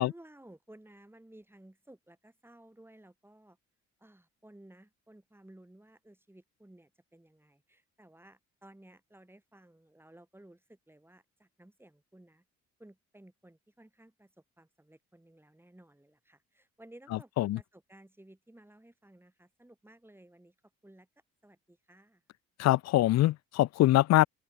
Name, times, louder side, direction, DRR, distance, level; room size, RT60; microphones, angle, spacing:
voice 1, 0.0-3.6 4.0-12.5 12.8-14.3 14.6-20.6 20.8-21.1 21.4-22.2, right 1 dB, 5° right, 7.0 m, -56 dB
voice 2, 22.6-24.3, left 15 dB, 60° left, 0.4 m, -23 dB
open air
cardioid pair, 90°, 30 cm